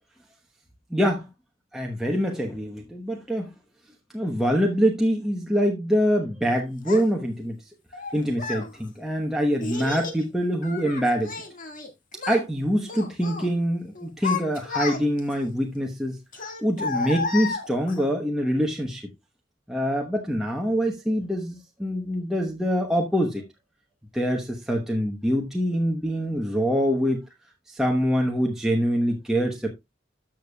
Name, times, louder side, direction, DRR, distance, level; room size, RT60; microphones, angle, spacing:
voice 1, 0.9-1.3 1.7-3.5 4.1-7.6 8.1-11.4 12.3-19.1 19.7-23.4 24.1-27.2 27.7-29.7, equal, 5° right, 1.0 m, -25 dB
Child speech kid speaking, 6.9-7.0 7.9-8.7 9.6-10.2 10.6-11.9 12.1-12.5 12.9-13.5 14.0-15.3 16.3-18.1, left 4 dB, 45° left, 1.8 m, -32 dB
13.0 x 6.9 x 2.3 m
head